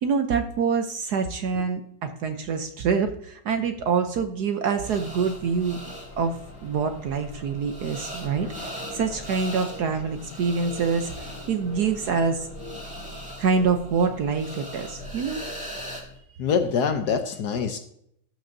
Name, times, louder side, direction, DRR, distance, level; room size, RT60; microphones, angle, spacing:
voice 1, 0.0-5.8 6.2-6.4 6.6-12.5 13.4-15.4, right 5 dB, 65° right, 7 dB, 1.1 m, -26 dB
sound 1, 4.8-16.2, left 1 dB, 85° left, 2.0 m, -46 dB
sound 2, 4.8-16.0, equal, 5° right, 1.9 m, -40 dB
sound 3, 8.3-13.3, left 5 dB, 45° left, 1.7 m, -47 dB
voice 2, 16.4-17.8, left 6 dB, 65° left, 7 dB, 1.2 m, -25 dB
13.5 x 6.2 x 2.7 m, 0.72 s
omnidirectional pair, 2.2 m